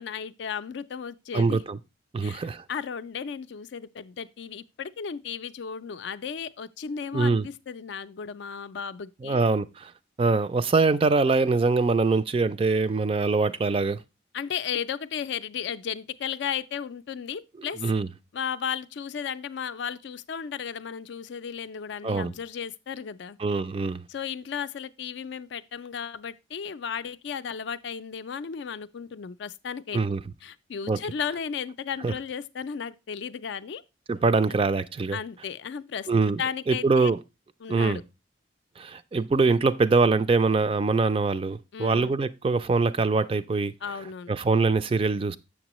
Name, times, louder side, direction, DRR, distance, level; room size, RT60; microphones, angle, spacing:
voice 1, 0.0-1.6 2.2-9.4 14.3-17.8 18.3-23.4 24.1-30.0 30.4-33.8 35.1-36.1 36.4-37.1 37.6-38.0 41.7-42.2 43.8-44.3, left 7 dB, 65° left, 0.4 m, -34 dB
voice 2, 1.3-1.8 2.1-2.6 7.1-7.5 9.2-9.9 10.2-14.0 17.8-18.1 22.0-22.3 23.4-24.0 29.9-30.2 30.9-31.0 32.0-32.1 34.1-35.2 36.1-36.4 36.7-37.2 37.7-38.0 38.8-43.7 44.3-45.4, right 3 dB, 30° right, 0.3 m, -23 dB
7.2 x 6.8 x 3.0 m
head